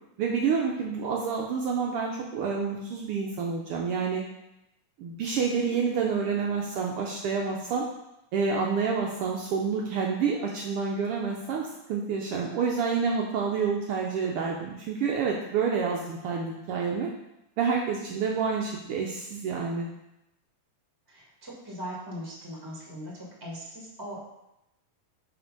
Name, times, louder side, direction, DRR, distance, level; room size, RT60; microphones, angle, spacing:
voice 1, 0.2-4.2 5.0-7.9 8.3-17.1 17.6-19.9, right 5 dB, 85° right, -1 dB, 1.2 m, -28 dB
voice 2, 21.1-24.2, equal, 15° right, -4 dB, 0.7 m, -40 dB
6.0 x 4.2 x 5.2 m, 0.88 s
omnidirectional pair, 3.3 m